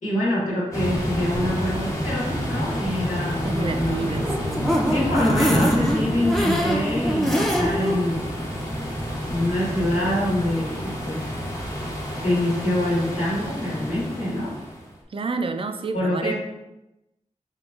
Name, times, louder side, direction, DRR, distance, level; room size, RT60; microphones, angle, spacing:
voice 1, 0.0-4.1 4.9-8.3 9.3-11.4 12.2-14.5 15.9-16.3, left 1 dB, 85° left, -8 dB, 1.4 m, -25 dB
sound 1, 0.7-14.9, equal, 25° left, 0.9 m, -29 dB
voice 2, 3.5-4.7 15.1-16.3, right 3 dB, 45° right, 7 dB, 0.3 m, -29 dB
sound 2, 4.1-8.0 8.4-8.5 8.8-8.9, equal, ahead, 0.6 m, -23 dB
3.7 x 3.0 x 2.4 m, 0.95 s
cardioid pair, 50°, 13 cm